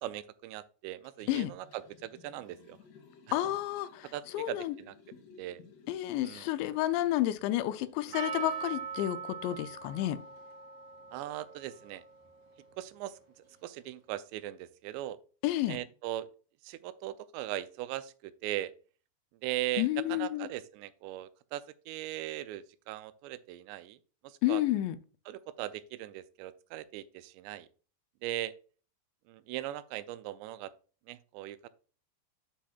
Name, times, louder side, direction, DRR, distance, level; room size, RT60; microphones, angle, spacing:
voice 1, 0.0-2.8 4.1-5.0 5.4-5.6 6.2-6.5 11.1-12.0 12.8-13.2 13.6-15.2 15.7-16.3 16.6-18.7 19.4-24.0 24.2-24.6 25.3-27.7 28.2-28.5 29.3-30.7 31.1-31.6, right 14 dB, 85° right, 2.7 m, -39 dB
Liquid, 1.0-8.7 9.1-9.2, left 5 dB, 70° left, 4.2 m, -58 dB
voice 2, 3.3-4.1 4.3-4.8 5.9-10.2 15.4-15.8 19.8-20.5 24.4-25.0, left 14 dB, 90° left, 2.9 m, -30 dB
Percussion, 8.1-13.1, right 6 dB, 45° right, 3.0 m, -42 dB
9.1 x 7.2 x 2.3 m
omnidirectional pair, 5.0 m